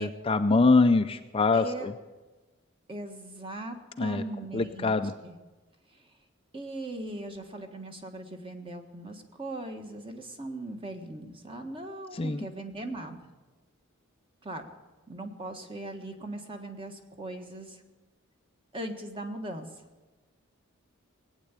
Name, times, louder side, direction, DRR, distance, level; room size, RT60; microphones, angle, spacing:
voice 1, 0.0-1.9 4.0-4.2 4.5-5.1 12.1-12.5, left 3 dB, 25° left, 8 dB, 0.4 m, -24 dB
voice 2, 1.5-1.9 2.9-4.9 5.2-5.4 5.9-6.0 6.5-13.3 14.4-14.6 15.1-17.8 18.7-19.7, right 1 dB, 25° right, 5 dB, 1.5 m, -39 dB
18.5 x 9.1 x 8.3 m, 1.2 s
head